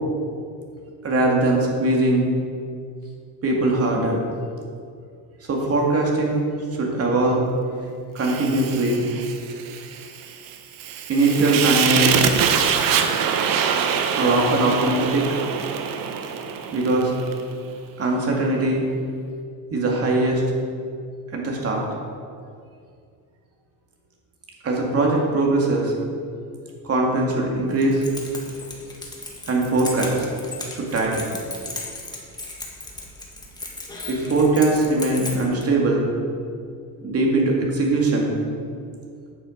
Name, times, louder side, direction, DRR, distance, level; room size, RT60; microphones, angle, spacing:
voice 1, 1.0-2.3 3.4-4.2 5.5-6.4 6.8-7.4 8.1-9.0 11.1-12.2 14.1-15.2 16.7-17.1 18.0-18.8 19.7-20.4 21.3-21.8 24.6-25.9 26.8-28.0 29.5-30.3 30.7-31.4 34.1-36.1 37.0-38.4, right 2 dB, 35° right, -1 dB, 2.2 m, -21 dB
Fire, 8.2-17.4, right 7 dB, 50° right, 1.0 m, -24 dB
Keys jangling, 27.7-35.6, left 2 dB, 10° left, 1.6 m, -36 dB
9.3 x 7.2 x 5.1 m, 2.3 s
cardioid pair, 125°, 43 cm